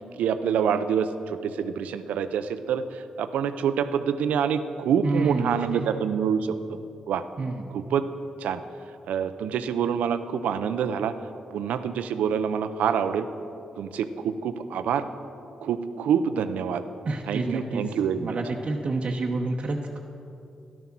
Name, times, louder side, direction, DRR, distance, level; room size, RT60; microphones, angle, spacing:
voice 1, 0.0-6.8 7.1-7.2 7.7-8.0 8.4-8.6 9.1-11.1 11.5-13.3 13.8-15.1 15.6-16.8 17.3-18.4, right 7 dB, 80° right, 11 dB, 0.6 m, -26 dB
voice 2, 5.0-5.8 7.4-7.6 17.0-17.8 18.2-20.0, right 3 dB, 50° right, 0 dB, 1.0 m, -28 dB
13.0 x 11.5 x 6.0 m, 2.7 s
supercardioid pair, 50°, 2 cm